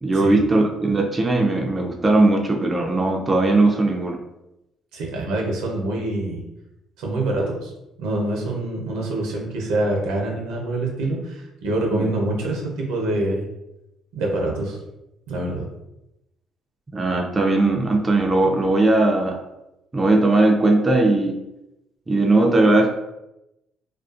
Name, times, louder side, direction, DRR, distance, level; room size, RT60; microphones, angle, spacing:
voice 1, 0.0-4.2 11.9-12.1 16.9-19.4 19.9-21.4 22.1-22.9, right 2 dB, 25° right, 1 dB, 0.4 m, -18 dB
voice 2, 4.9-6.4 7.0-7.7 8.0-13.4 14.1-14.8 15.3-15.7, right 2 dB, 85° right, 0 dB, 0.6 m, -25 dB
2.4 x 2.3 x 2.4 m, 0.91 s
supercardioid pair, 70°, 0 cm